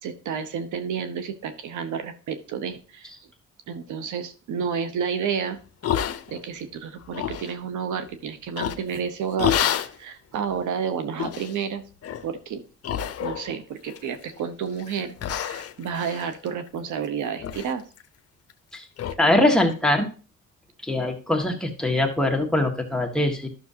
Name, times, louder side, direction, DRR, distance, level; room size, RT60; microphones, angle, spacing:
voice 1, 0.0-3.1 3.7-5.6 6.3-9.6 10.0-11.8 12.2-12.6 13.2-17.8, right 7 dB, 80° right, 9 dB, 1.0 m, -30 dB
sound 1, 5.8-6.6 7.0-7.5 8.6-9.0 9.4-10.0 10.5-10.6 11.2-11.6 12.0-12.3 12.8-13.5 13.9-14.4 14.8-14.9 15.2-17.1 17.4-17.7 18.0-18.1 18.5-18.6 19.0-19.1, left 10 dB, 55° left, 0.8 m, -28 dB
voice 2, 19.2-20.1 20.8-23.5, left 1 dB, ahead, 2 dB, 1.7 m, -22 dB
12.0 x 6.3 x 2.8 m, 0.36 s
cardioid pair, 90°, 30 cm